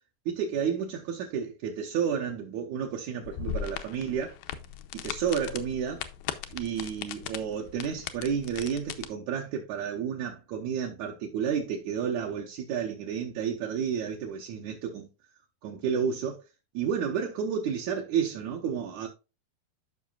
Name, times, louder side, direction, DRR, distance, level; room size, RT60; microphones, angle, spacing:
voice 1, 0.2-4.3 4.9-6.0 6.5-15.1 15.6-16.4 16.7-19.1, right 7 dB, 75° right, 1.8 m, -31 dB
sound 1, 3.2-9.1, left 10 dB, 80° left, 2.4 m, -38 dB
12.5 x 5.5 x 2.4 m
omnidirectional pair, 4.3 m